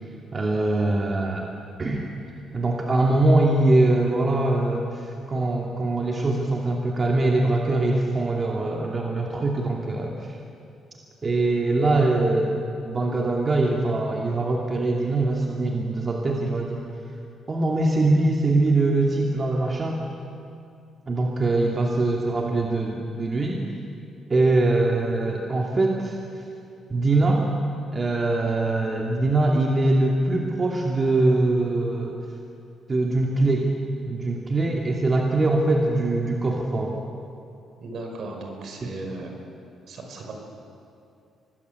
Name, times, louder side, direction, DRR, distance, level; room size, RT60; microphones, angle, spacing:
voice 1, 0.3-1.4 1.8-2.0 2.5-10.3 11.2-12.5 12.9-16.8 17.5-20.0 21.1-23.6 24.3-26.2 26.9-27.4 27.9-32.2 32.9-33.7 34.1-37.0 38.8-38.9, right 2 dB, 35° right, 0 dB, 2.7 m, -22 dB
voice 2, 37.8-39.3 39.9-40.3, right 2 dB, 65° right, 2 dB, 5.5 m, -36 dB
25.5 x 20.0 x 8.4 m, 2.6 s
cardioid pair, 90°, 0 cm